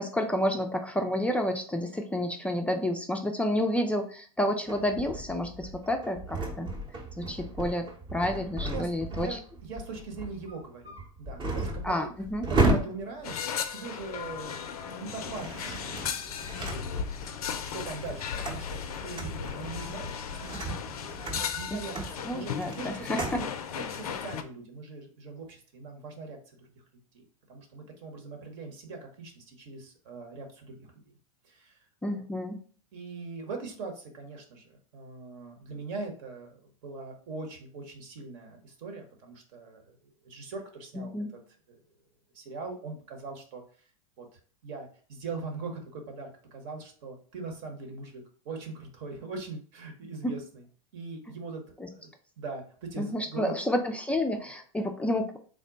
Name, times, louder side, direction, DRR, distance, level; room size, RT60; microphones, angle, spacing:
voice 1, 0.0-6.7 7.2-7.9 8.1-9.4 11.8-12.5 21.7-21.8 22.2-23.2 32.0-32.6 41.1-41.3 50.2-50.3 51.8-51.9 53.0-55.4, left 1 dB, 5° left, 3 dB, 0.3 m, -30 dB
sound 1, 4.7-14.5 15.2-17.4 17.8-23.5, right 2 dB, 25° right, 0.8 m, -34 dB
voice 2, 8.5-11.9 12.5-16.6 16.9-20.7 21.2-23.5 23.8-26.8 27.1-27.2 27.5-30.9 31.4-31.8 32.1-32.2 32.9-39.9 40.2-41.1 41.7-41.8 42.3-43.6 44.2-50.6 50.9-51.6 51.9-53.6, right 4 dB, 60° right, 3 dB, 1.1 m, -41 dB
sound 2, 13.2-24.4, left 7 dB, 85° left, 0.4 m, -36 dB
3.6 x 2.1 x 3.9 m, 0.43 s
hypercardioid pair, 105°, 18 cm